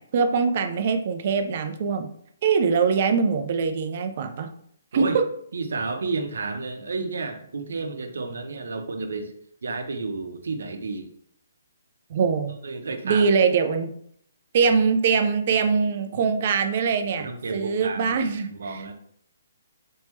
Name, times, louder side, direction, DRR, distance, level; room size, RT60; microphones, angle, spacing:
voice 1, 0.0-2.1 2.4-4.5 4.9-5.2 12.1-12.5 13.0-13.9 14.5-17.3 17.5-18.9, right 5 dB, 35° right, 6 dB, 0.5 m, -22 dB
voice 2, 5.5-9.3 9.6-11.1 12.6-13.3 16.1-16.3 17.2-18.2 18.5-18.9, right 3 dB, 75° right, 5 dB, 0.8 m, -31 dB
4.3 x 3.5 x 3.1 m, 0.66 s
hypercardioid pair, 170°, 0 cm